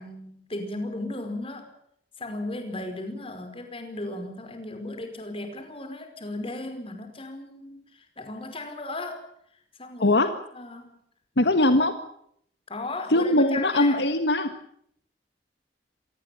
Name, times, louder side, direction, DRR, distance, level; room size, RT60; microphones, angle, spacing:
voice 1, 0.0-1.7 2.2-9.3 9.8-10.2 10.5-11.0 11.6-11.7 12.7-14.0, left 2 dB, 30° left, 7 dB, 5.1 m, -36 dB
voice 2, 11.4-11.9 13.1-14.5, left 1 dB, 65° left, 9 dB, 1.7 m, -21 dB
26.5 x 19.0 x 7.3 m, 0.68 s
head